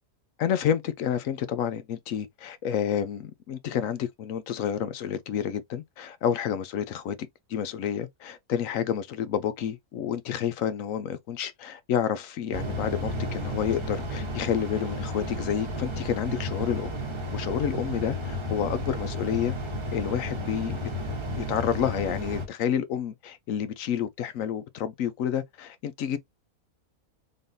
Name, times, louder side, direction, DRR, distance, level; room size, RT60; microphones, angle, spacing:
voice 1, 0.4-7.2 7.5-16.9 17.3-19.5 19.9-20.8 21.4-26.2, left 9 dB, 70° left, 1.0 m, -29 dB
sound 1, 12.5-22.5, equal, 25° right, 0.8 m, -32 dB
3.9 x 3.4 x 2.6 m
omnidirectional pair, 1.5 m